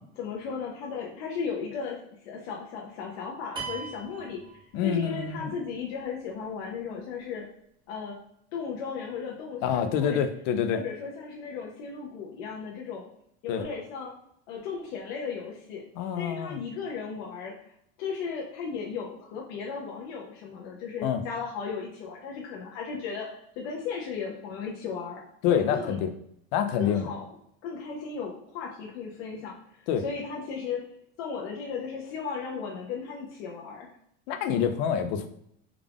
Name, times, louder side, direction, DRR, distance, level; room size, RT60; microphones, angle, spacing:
voice 1, 0.2-2.0 2.2-4.4 4.8-7.5 7.9-8.2 8.5-10.2 10.7-13.0 13.4-14.1 14.5-15.8 16.1-17.5 18.0-23.3 23.6-25.2 25.5-26.0 26.8-27.2 27.6-29.6 30.0-30.8 31.2-33.9, left 5 dB, 80° left, -2 dB, 0.7 m, -35 dB
sound 1, 3.6-5.3, right 5 dB, 15° right, 0.5 m, -39 dB
voice 2, 4.7-5.5 9.6-10.8 13.5-13.6 16.0-16.6 21.0-21.2 25.4-26.1 26.5-27.1 29.9-30.0 34.3-35.3, left 8 dB, 55° left, 8 dB, 0.4 m, -26 dB
3.5 x 2.3 x 3.4 m, 0.72 s
cardioid pair, 175°, 30 cm